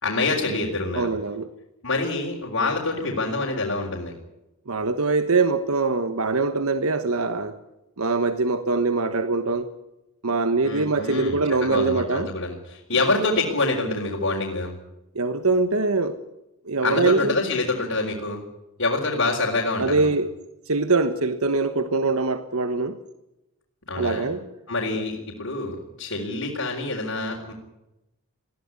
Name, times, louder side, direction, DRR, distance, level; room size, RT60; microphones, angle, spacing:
voice 1, 0.0-1.1 1.8-4.1 10.6-14.7 16.8-18.4 18.8-20.1 23.9-24.3 24.7-27.5, left 3 dB, 70° left, -2 dB, 4.2 m, -26 dB
voice 2, 0.9-1.5 4.7-7.6 8.0-9.7 10.2-12.3 12.9-13.0 15.1-16.2 16.7-17.3 19.8-20.3 20.7-23.0 23.9-24.4 24.9-25.0, right 3 dB, 80° right, 10 dB, 1.4 m, -23 dB
21.5 x 15.5 x 9.7 m, 0.93 s
head